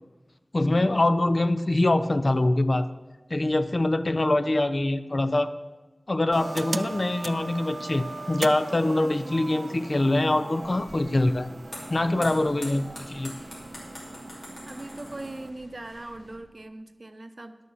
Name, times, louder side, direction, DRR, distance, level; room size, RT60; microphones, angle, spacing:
voice 1, 0.5-2.9 3.3-5.5 6.1-11.5 11.9-13.3, left 2 dB, 50° left, 11 dB, 0.5 m, -24 dB
sound 1, 6.3-15.5, right 2 dB, 60° right, 0.4 m, -38 dB
sound 2, 10.6-16.4, left 1 dB, 85° left, 2.8 m, -45 dB
voice 2, 12.0-12.3 14.7-17.6, right 2 dB, 45° right, 9 dB, 0.8 m, -40 dB
10.5 x 6.4 x 7.0 m, 1.2 s
wide cardioid pair, 60°, 0 cm